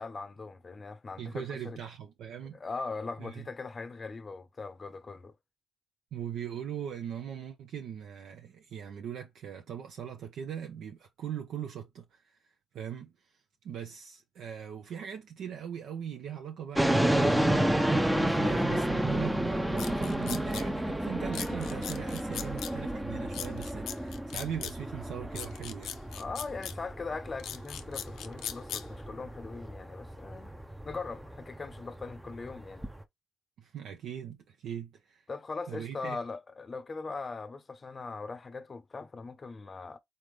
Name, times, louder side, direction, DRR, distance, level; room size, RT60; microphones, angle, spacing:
voice 1, 0.0-1.8 2.5-5.3 26.1-30.6 30.8-32.9 35.3-40.0, left 4 dB, 30° left, 0.7 m, -40 dB
voice 2, 1.2-2.6 3.2-3.5 6.1-12.5 12.7-13.4 13.6-25.9 33.6-35.2 35.7-36.2, right 8 dB, 75° right, 0.7 m, -40 dB
sound 1, 16.7-33.0, right 1 dB, 5° right, 0.6 m, -31 dB
sound 2, 19.8-20.6 21.3-22.7 23.3-24.7 25.4-26.7 27.4-28.8, left 9 dB, 85° left, 0.7 m, -39 dB
4.0 x 3.5 x 3.2 m
cardioid pair, 90°, 0 cm